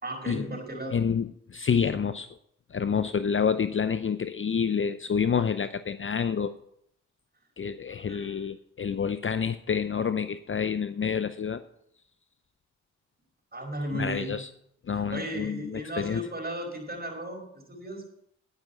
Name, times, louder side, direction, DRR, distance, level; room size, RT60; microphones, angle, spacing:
voice 1, 0.0-1.0 7.9-8.4 13.5-14.4 14.9-18.1, right 1 dB, 25° right, 3 dB, 5.1 m, -36 dB
voice 2, 0.9-2.3 2.7-6.5 7.6-11.6 13.9-14.5 14.9-16.2, left 6 dB, 35° left, 12 dB, 0.6 m, -28 dB
10.5 x 9.0 x 5.8 m, 0.71 s
hypercardioid pair, 40°, 35 cm